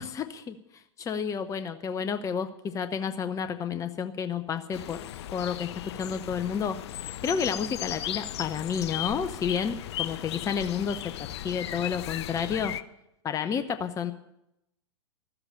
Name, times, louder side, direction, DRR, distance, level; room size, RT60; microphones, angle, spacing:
voice 1, 0.0-5.0 5.3-5.7 6.0-6.8 7.2-12.8 13.2-14.1, left 7 dB, 20° left, 9 dB, 0.9 m, -31 dB
sound 1, 4.7-12.8, left 13 dB, 60° left, 0.7 m, -36 dB
13.5 x 8.0 x 9.8 m, 0.82 s
hypercardioid pair, 105°, 16 cm